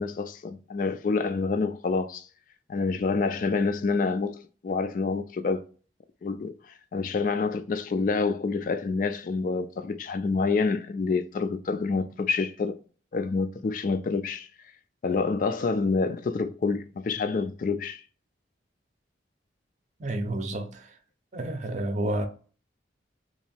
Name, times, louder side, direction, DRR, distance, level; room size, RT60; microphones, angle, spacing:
voice 1, 0.0-2.3 2.7-5.7 6.2-12.8 13.1-14.5 15.0-18.0, left 4 dB, 45° left, 0.3 m, -27 dB
voice 2, 20.0-21.0 21.3-22.3, right 1 dB, 40° right, 0.6 m, -30 dB
2.9 x 2.6 x 4.3 m
head